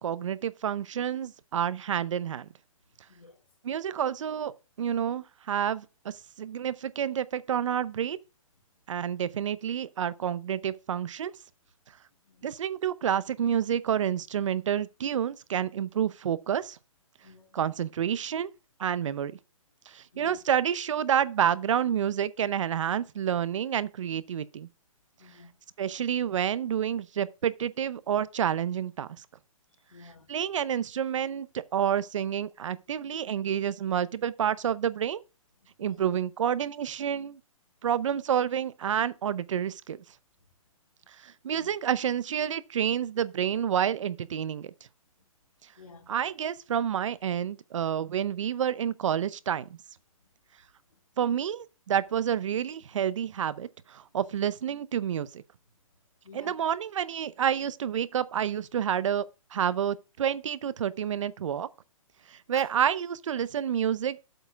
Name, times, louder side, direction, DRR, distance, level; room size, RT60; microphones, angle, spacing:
voice 1, 0.0-2.5 3.6-4.5 4.8-8.2 8.9-11.3 12.4-16.8 17.5-18.5 18.8-19.3 19.9-24.7 25.8-29.1 30.3-35.2 35.8-37.4 37.8-40.0 41.2-44.7 46.1-49.7 51.2-55.4 56.3-59.2 59.5-61.7 62.3-64.2, right 9 dB, 65° right, 0.7 m, -29 dB
voice 2, 3.1-3.4 12.2-12.5 17.2-17.6 20.1-20.4 25.2-25.6 29.9-30.3 35.8-36.1 41.5-41.7 45.8-46.1 56.2-56.6 62.5-62.7, left 4 dB, 85° left, 2.5 m, -52 dB
7.9 x 4.5 x 7.0 m
hypercardioid pair, 160°, 18 cm